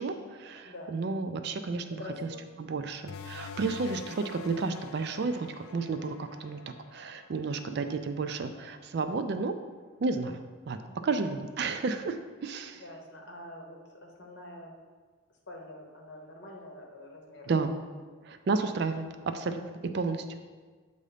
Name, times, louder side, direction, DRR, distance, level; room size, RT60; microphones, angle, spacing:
voice 1, 0.0-2.3 2.6-6.6 6.9-9.5 10.0-10.4 10.7-10.8 11.0-12.8 17.5-17.7 18.3-19.6 19.9-20.2, right 4 dB, 55° right, 8 dB, 0.3 m, -32 dB
voice 2, 1.9-2.4 3.5-3.6 10.9-11.1 12.8-14.7 15.5-17.5 19.8-19.9, left 2 dB, 55° left, 0 dB, 1.0 m, -46 dB
sound 1, 3.1-8.3, left 5 dB, 85° left, 0.3 m, -46 dB
7.4 x 2.7 x 4.9 m, 1.4 s
head